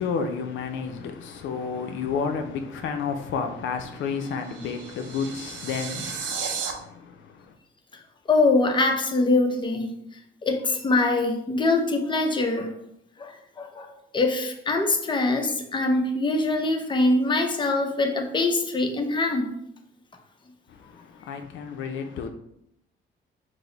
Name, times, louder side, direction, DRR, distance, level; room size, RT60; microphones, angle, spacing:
voice 1, 0.0-7.6 20.7-22.3, left 5 dB, 75° left, 0.5 m, -31 dB
sound 1, 4.0-6.7, right 6 dB, 70° right, 0.7 m, -34 dB
voice 2, 8.3-9.9 10.4-12.7 13.2-19.5, left 2 dB, 25° left, 0.6 m, -23 dB
4.7 x 2.0 x 3.8 m
cardioid pair, 90°, 20 cm